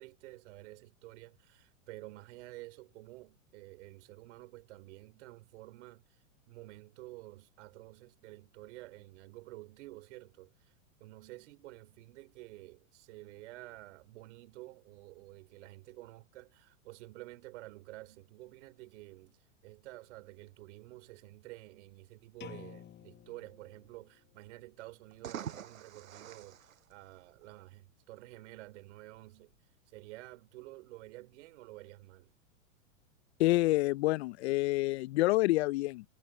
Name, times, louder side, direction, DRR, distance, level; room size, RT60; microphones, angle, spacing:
voice 1, 0.0-6.2 6.5-10.7 11.0-29.5 29.9-32.3, right 19 dB, 60° right, 3.1 m, -51 dB
sound 1, 22.4-24.3, left 11 dB, 25° left, 5.7 m, -51 dB
sound 2, 25.0-27.6, right 9 dB, 90° right, 6.0 m, -45 dB
voice 2, 33.4-36.0, left 19 dB, 55° left, 0.6 m, -28 dB
hypercardioid pair, 130°, 39 cm